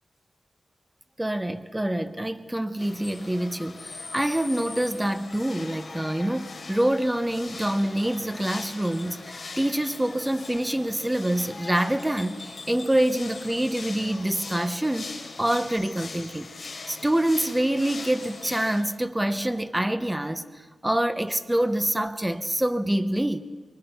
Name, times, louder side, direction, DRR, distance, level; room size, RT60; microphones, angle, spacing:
voice 1, 1.2-15.1 15.4-16.5 16.9-20.4 20.8-23.4, right 1 dB, 10° right, 0.9 m, -26 dB
sound 1, 2.8-18.8, left 3 dB, 45° left, 3.7 m, -41 dB
24.5 x 23.5 x 5.7 m
wide cardioid pair, 165°, 0 cm